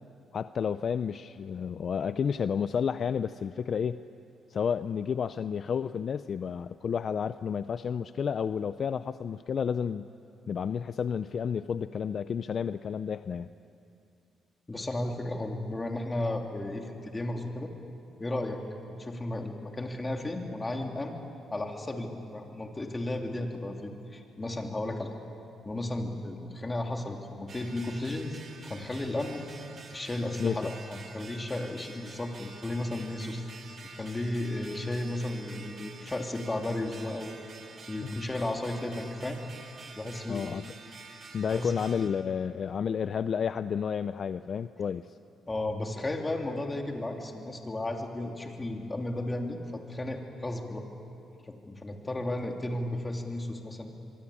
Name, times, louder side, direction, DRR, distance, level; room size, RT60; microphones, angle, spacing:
voice 1, 0.3-4.0 4.5-10.1 10.5-13.5 30.4-30.7 40.3-40.6 41.3-45.2, left 7 dB, 50° left, 13 dB, 0.5 m, -31 dB
voice 2, 14.7-17.7 18.2-18.6 18.9-21.2 21.5-25.2 25.6-29.4 29.9-33.4 34.0-37.4 37.9-39.4 39.9-40.5 41.5-41.7 45.5-50.9 51.4-54.0, left 1 dB, 20° left, 2 dB, 3.2 m, -34 dB
sound 1, 27.5-42.1, right 4 dB, 45° right, 2.9 m, -48 dB
25.5 x 23.5 x 8.6 m, 2.6 s
cardioid pair, 90°, 0 cm